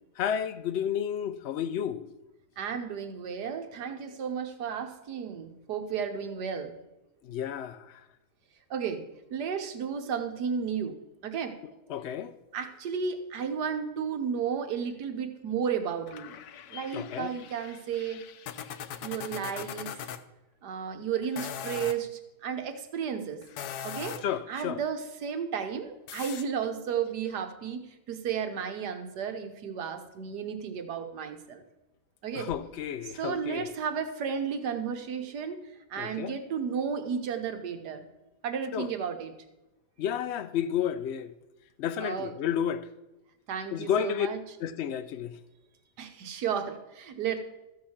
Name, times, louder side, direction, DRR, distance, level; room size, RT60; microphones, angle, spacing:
voice 1, 0.2-2.1 7.2-8.0 11.9-12.3 16.9-17.3 24.2-24.8 32.3-33.7 36.0-36.4 38.7-38.9 40.0-41.3 41.8-42.9 43.7-44.3 44.6-45.4, left 9 dB, 85° left, 0.6 m, -31 dB
voice 2, 2.6-6.7 8.7-9.0 9.3-10.9 11.2-11.6 12.5-16.4 16.7-18.2 19.0-20.0 20.6-23.4 23.8-24.2 24.5-31.6 32.2-32.5 33.0-35.6 35.9-38.0 38.4-39.3 42.0-42.3 43.5-44.4 46.0-47.4, right 7 dB, 80° right, 1.6 m, -33 dB
sound 1, 16.1-20.2 21.2-22.0 23.4-24.4 26.1-26.4, left 9 dB, 70° left, 1.1 m, -40 dB
13.5 x 4.8 x 7.2 m
omnidirectional pair, 1.8 m